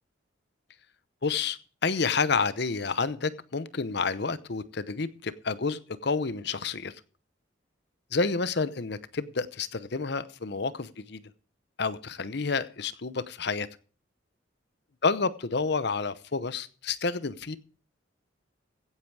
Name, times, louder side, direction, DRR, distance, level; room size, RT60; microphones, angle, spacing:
voice 1, 1.2-6.9 8.1-11.2 11.8-13.7 15.0-17.6, left 4 dB, 60° left, 16 dB, 0.8 m, -29 dB
16.0 x 8.8 x 4.7 m, 0.39 s
head